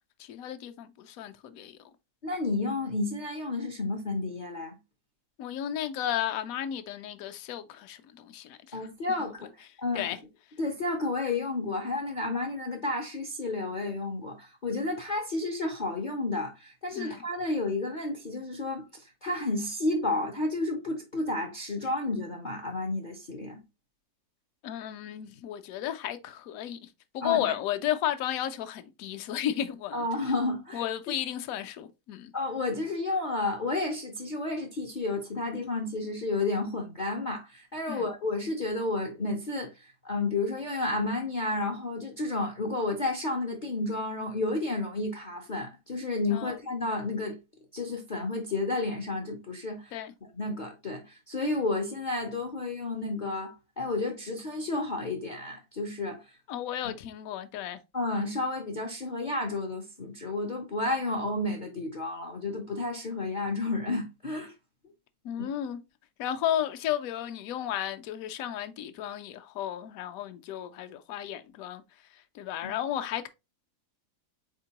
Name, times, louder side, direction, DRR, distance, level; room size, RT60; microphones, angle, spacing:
voice 1, 0.2-1.8 5.4-8.9 9.2-9.5 9.9-10.2 17.0-17.2 24.6-26.9 27.1-30.1 30.7-32.3 37.9-38.0 46.3-46.6 49.9-50.1 56.5-57.8 65.2-65.8 66.2-71.8 72.3-73.3, left 11 dB, 70° left, 0.9 m, -33 dB
voice 2, 2.2-4.8 8.7-9.5 9.8-10.0 10.6-23.6 27.2-27.5 29.9-30.8 32.3-47.4 47.7-50.0 50.3-56.3 57.9-64.5 72.6-72.7, left 2 dB, 55° left, 0.5 m, -31 dB
4.3 x 3.7 x 2.8 m
omnidirectional pair, 1.7 m